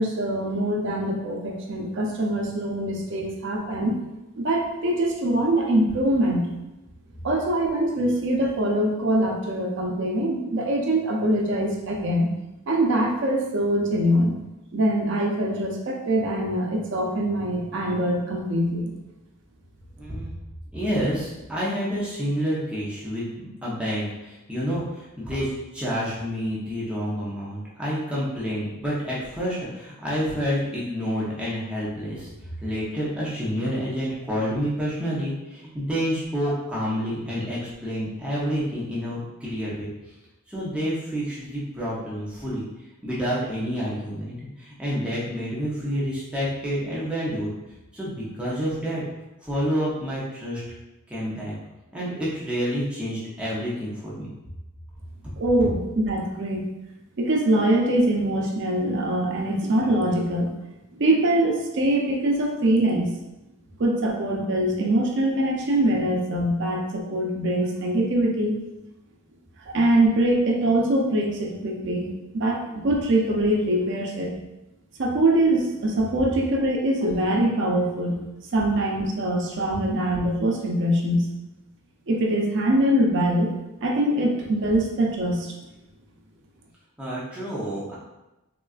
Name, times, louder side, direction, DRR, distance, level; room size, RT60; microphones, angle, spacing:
voice 1, 0.0-4.0 4.4-6.4 7.2-12.3 12.7-14.3 14.7-18.9 55.4-56.6 57.2-60.5 60.9-63.1 63.8-68.5 69.7-72.1 72.3-74.3 75.0-78.2 78.5-81.2 82.1-83.5 83.8-85.6, right 1 dB, 60° right, 0 dB, 0.5 m, -23 dB
voice 2, 20.0-20.4 20.7-32.3 32.6-39.9 40.5-42.6 43.0-47.5 47.9-49.0 49.4-50.6 51.1-51.5 51.9-54.3 87.0-87.9, equal, 5° right, -8 dB, 0.6 m, -28 dB
3.6 x 2.3 x 2.4 m, 0.98 s
head